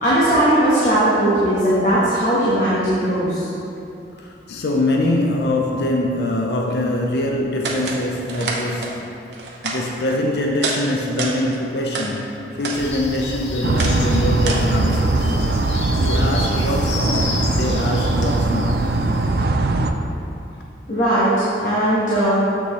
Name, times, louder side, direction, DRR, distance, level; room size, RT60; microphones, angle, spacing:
voice 1, 0.0-3.5 20.9-22.4, right 1 dB, 45° left, -9 dB, 1.2 m, -18 dB
voice 2, 4.1-9.1 9.6-15.5 15.9-18.8, left 1 dB, 70° left, 0 dB, 0.5 m, -23 dB
sound 1, 7.6-8.0 8.3-8.9 9.3-10.2 10.6-10.8 11.1-12.1 12.5-12.8 13.1-15.0, right 3 dB, 80° right, 0.9 m, -28 dB
sound 2, 12.7-19.4, left 2 dB, 85° left, 0.9 m, -30 dB
sound 3, 13.6-19.9, right 2 dB, 60° right, 0.4 m, -20 dB
7.1 x 6.6 x 3.1 m, 2.7 s
head